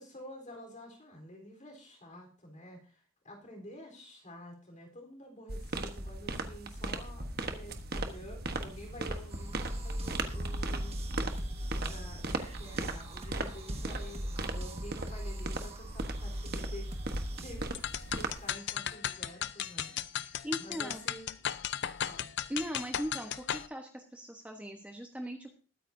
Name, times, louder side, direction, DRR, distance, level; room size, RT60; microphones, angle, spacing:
voice 1, 0.0-11.0 11.8-17.0 17.4-17.8 18.1-21.3 21.9-22.3, equal, 35° left, 2 dB, 3.9 m, -49 dB
sound 1, 5.5-18.5, right 2 dB, 50° right, 1.2 m, -38 dB
sound 2, 9.3-17.5, equal, 30° right, 1.6 m, -41 dB
sound 3, 17.7-23.7, left 10 dB, 55° left, 0.5 m, -36 dB
voice 2, 20.2-21.0 22.5-25.5, equal, 5° right, 2 dB, 1.1 m, -39 dB
21.0 x 9.3 x 2.7 m, 0.37 s
head